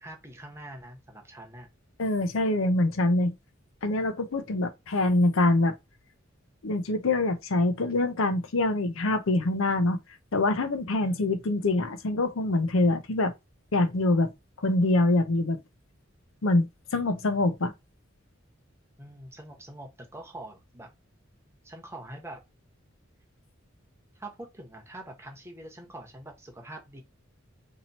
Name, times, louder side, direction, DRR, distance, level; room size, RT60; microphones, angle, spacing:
voice 1, 0.0-1.7 11.0-11.3 19.0-20.9 21.6-22.4 24.1-27.0, right 1 dB, 15° right, 1.0 m, -44 dB
voice 2, 2.0-3.3 3.8-5.7 6.6-10.0 10.3-13.3 13.7-14.3 14.6-15.6 16.4-17.7, left 2 dB, 90° left, 0.7 m, -25 dB
2.9 x 2.8 x 4.1 m
head